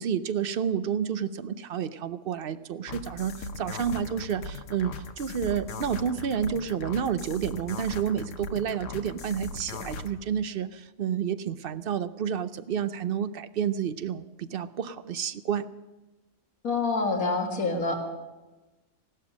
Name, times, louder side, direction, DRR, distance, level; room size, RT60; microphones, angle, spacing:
voice 1, 0.0-15.7, right 8 dB, 55° right, 14 dB, 0.7 m, -30 dB
sound 1, 2.9-10.1, left 4 dB, 65° left, 1.3 m, -39 dB
voice 2, 16.6-18.0, left 3 dB, 85° left, 2 dB, 2.2 m, -26 dB
17.0 x 12.5 x 6.1 m, 1.1 s
omnidirectional pair, 1.4 m